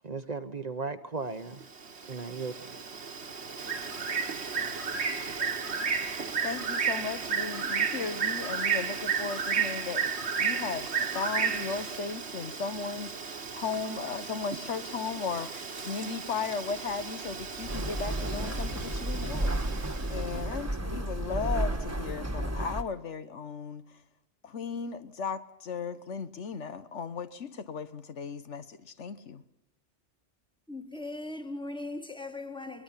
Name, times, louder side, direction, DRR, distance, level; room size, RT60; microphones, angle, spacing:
voice 1, 0.0-1.6 2.0-2.9, right 4 dB, 40° right, 0.9 m, -36 dB
Bird, 1.6-20.3, right 6 dB, 65° right, 1.7 m, -33 dB
voice 2, 6.4-10.1 10.4-13.3 13.5-19.6 20.1-24.0 24.4-29.4, left 5 dB, 80° left, 1.5 m, -36 dB
sound 1, 17.7-22.8, right 1 dB, 15° right, 1.5 m, -32 dB
voice 3, 30.7-32.8, left 2 dB, 5° left, 1.6 m, -39 dB
22.5 x 20.5 x 5.7 m
omnidirectional pair, 1.2 m